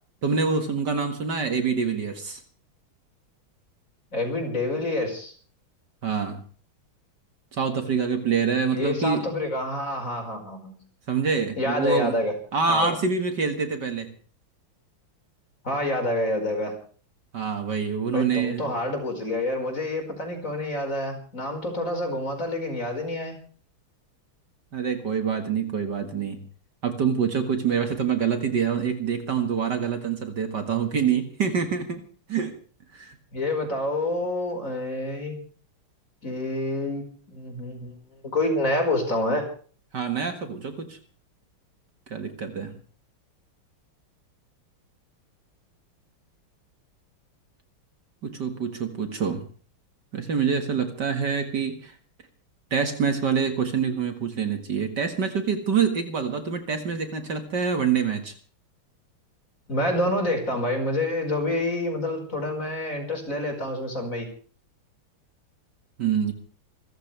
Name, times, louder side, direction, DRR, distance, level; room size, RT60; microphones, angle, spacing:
voice 1, 0.2-2.4 6.0-6.4 7.5-9.3 11.1-12.1 12.5-14.1 17.3-18.7 24.7-26.4 26.8-32.0 32.3-32.5 32.9-33.2 39.9-41.0 42.1-42.7 48.2-49.4 50.1-51.9 52.7-58.3 66.0-66.3, right 6 dB, 55° right, 7 dB, 2.4 m, -26 dB
voice 2, 4.1-5.3 8.7-10.8 11.6-12.3 12.7-13.0 15.6-16.8 18.1-23.4 33.3-35.4 36.2-39.5 59.7-64.3, left 1 dB, 35° left, 4 dB, 5.3 m, -27 dB
27.0 x 14.5 x 3.4 m, 0.42 s
omnidirectional pair, 2.3 m